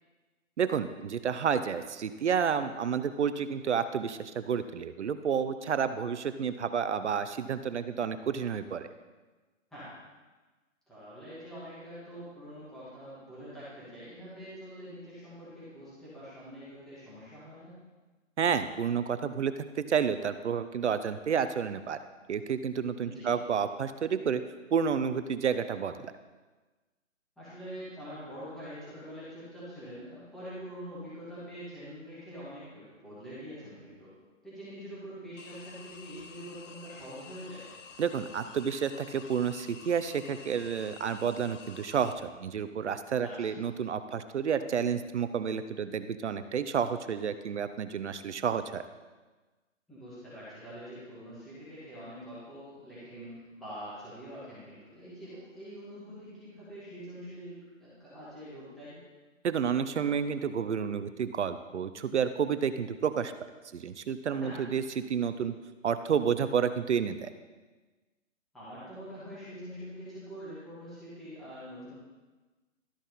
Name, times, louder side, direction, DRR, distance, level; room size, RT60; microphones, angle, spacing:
voice 1, 0.6-8.9 18.4-22.0 22.3-24.4 24.7-26.1 38.0-48.8 59.4-63.3 63.7-65.5 65.8-67.3, right 7 dB, 60° right, 11 dB, 0.6 m, -30 dB
voice 2, 10.9-17.7 23.0-23.3 27.4-34.1 34.4-37.7 43.2-43.5 49.9-59.0 64.4-64.6 68.5-71.9, equal, ahead, -12 dB, 2.2 m, -45 dB
sound 1, 35.4-42.1, left 5 dB, 70° left, 1.1 m, -50 dB
13.0 x 6.1 x 4.1 m, 1.2 s
hypercardioid pair, 165°, 39 cm